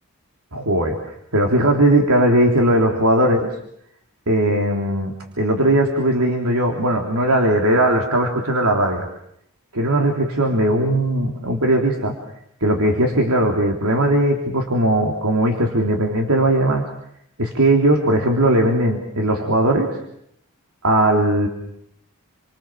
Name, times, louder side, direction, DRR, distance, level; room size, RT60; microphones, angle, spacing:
voice 1, 0.5-1.0 1.3-3.5 4.3-9.1 9.7-12.1 12.6-16.8 17.4-20.0 20.8-21.5, right 1 dB, 85° right, 2 dB, 3.4 m, -18 dB
30.0 x 25.5 x 7.4 m, 0.74 s
head